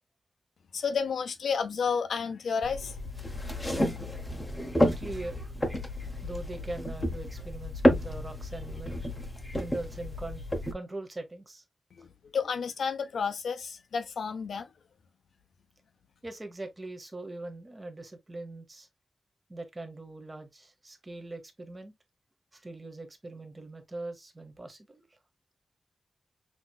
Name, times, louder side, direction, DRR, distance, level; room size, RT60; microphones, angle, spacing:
voice 1, 0.7-3.0 11.9-14.7, left 6 dB, 80° left, 0.8 m, -31 dB
sound 1, 2.6-10.7, left 1 dB, 15° left, 0.8 m, -30 dB
voice 2, 4.7-5.5 6.2-9.0 9.5-10.4 10.7-11.6 12.0-12.1 16.2-18.9 19.5-21.9 22.5-25.2, right 2 dB, 20° right, 1.0 m, -41 dB
5.9 x 2.9 x 2.3 m
wide cardioid pair, 160°, 0 cm